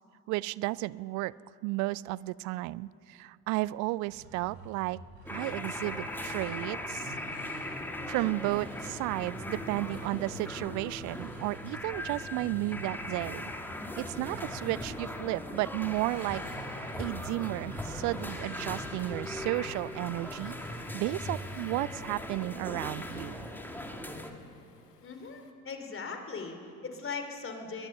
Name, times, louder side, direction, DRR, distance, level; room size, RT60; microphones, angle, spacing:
voice 1, 0.3-1.3 1.6-5.0 5.3-7.1 8.1-13.5 14.0-16.4 17.0-20.6 20.9-23.5, right 19 dB, 40° right, 22 dB, 0.4 m, -33 dB
sound 1, 4.0-20.7, right 2 dB, 75° right, 5.3 m, -48 dB
slot.machine.arcade, 5.3-24.3, left 1 dB, 5° left, 2.2 m, -39 dB
Waves surf, 19.7-25.5, left 5 dB, 80° left, 1.5 m, -58 dB
voice 2, 25.0-27.9, left 4 dB, 25° left, 5 dB, 3.4 m, -39 dB
22.0 x 21.5 x 5.5 m, 2.6 s
figure-of-eight pair, 60°, 46 cm